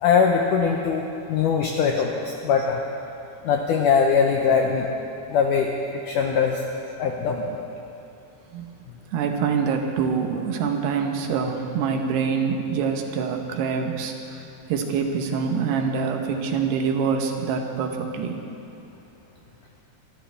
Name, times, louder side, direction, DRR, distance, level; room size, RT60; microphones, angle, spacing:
voice 1, 0.0-2.8 3.4-4.9 5.3-5.7 6.1-6.6 7.0-7.6, left 6 dB, 85° left, 1 dB, 1.8 m, -21 dB
voice 2, 9.1-14.4 14.7-18.4, right 6 dB, 85° right, 3 dB, 3.2 m, -25 dB
24.5 x 13.0 x 3.5 m, 2.7 s
omnidirectional pair, 4.6 m